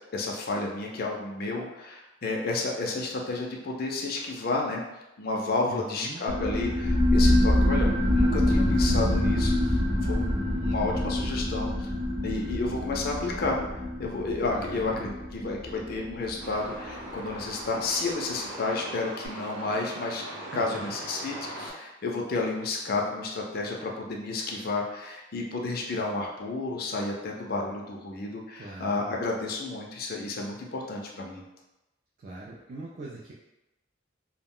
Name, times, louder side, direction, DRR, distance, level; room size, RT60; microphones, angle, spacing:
voice 1, 0.1-4.8 5.2-11.9 12.2-13.6 14.0-20.2 20.5-31.4, left 3 dB, 50° left, 0 dB, 0.4 m, -31 dB
voice 2, 5.7-6.2 14.5-15.1 20.5-21.0 28.6-29.1 32.2-33.3, right 2 dB, 45° right, -4 dB, 0.3 m, -41 dB
sound 1, 6.3-17.4, left 1 dB, 15° right, 0.7 m, -26 dB
Truck, 16.4-21.7, right 1 dB, 85° right, 0.7 m, -40 dB
2.3 x 2.1 x 3.6 m, 0.97 s
head